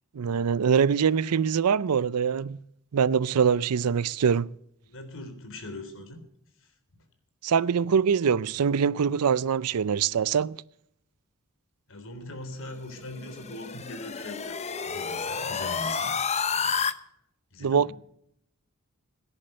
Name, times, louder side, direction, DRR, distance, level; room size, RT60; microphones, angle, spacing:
voice 1, 0.1-2.6 2.9-4.5 7.4-10.6 17.6-17.9, right 6 dB, 90° right, 0.5 m, -24 dB
voice 2, 4.8-6.2 6.6-7.0 11.9-14.6 14.8-16.1 16.5-16.8 17.5-17.9, left 2 dB, 60° left, 3.6 m, -41 dB
sound 1, 13.0-16.9, left 6 dB, 30° left, 0.8 m, -30 dB
17.5 x 11.0 x 6.6 m
head